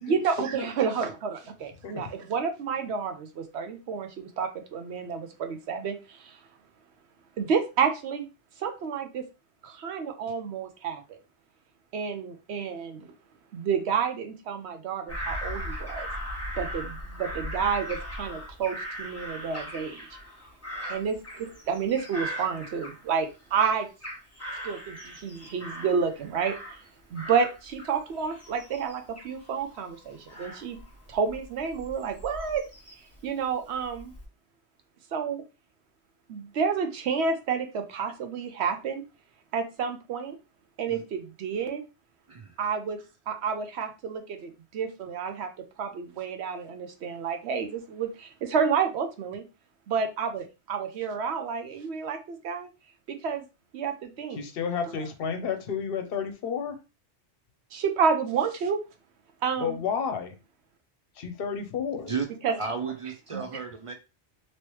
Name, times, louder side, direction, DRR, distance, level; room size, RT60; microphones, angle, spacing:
voice 1, 0.0-6.4 7.4-8.3 8.6-9.3 9.6-11.2 11.9-13.1 13.5-16.1 16.5-20.0 20.9-23.9 24.6-26.6 27.1-30.8 31.1-32.7 33.2-34.1 35.1-35.4 36.3-39.0 39.5-40.4 40.8-41.8 42.6-45.5 45.8-49.4 49.9-52.7 53.2-53.4 53.7-54.4 57.7-58.8 59.4-59.8 62.4-62.6 63.3-63.5, right 6 dB, 75° right, 5 dB, 0.9 m, -30 dB
Bird vocalization bird call bird song / Crow, 15.1-23.4 23.7-26.9 27.1-33.2 33.7-34.3, equal, 15° left, 1.0 m, -39 dB
voice 2, 54.3-56.8 59.6-60.3 61.2-62.1, left 6 dB, 60° left, 7 dB, 0.8 m, -31 dB
voice 3, 62.6-63.9, right 5 dB, 50° right, 5 dB, 0.4 m, -33 dB
3.1 x 3.0 x 3.0 m, 0.29 s
omnidirectional pair, 1.2 m